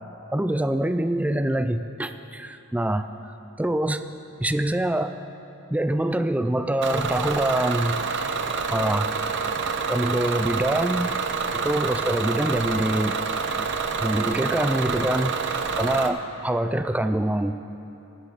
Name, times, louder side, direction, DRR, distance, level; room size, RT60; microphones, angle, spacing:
voice 1, 0.3-4.1 4.4-5.2 5.7-8.3 8.7-9.1 9.9-11.1 11.5-13.2 14.0-15.3 15.7-17.6, right 1 dB, 5° right, 10 dB, 0.4 m, -25 dB
Bus / Engine, 6.8-16.1, right 5 dB, 60° right, 0.7 m, -27 dB
17.5 x 11.0 x 4.0 m, 3.0 s
head